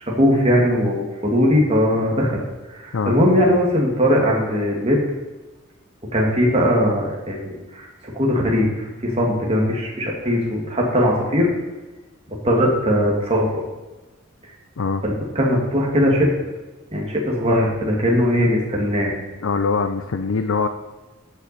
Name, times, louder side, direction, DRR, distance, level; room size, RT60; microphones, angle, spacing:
voice 1, 0.2-2.3 2.7-5.0 6.1-7.9 8.1-8.7 9.0-11.5 12.4-13.6 15.0-16.3 16.9-19.1, equal, 30° right, -2 dB, 2.0 m, -19 dB
voice 2, 19.4-20.7, left 4 dB, 75° left, 7 dB, 0.5 m, -22 dB
13.5 x 5.9 x 4.2 m, 1.2 s
head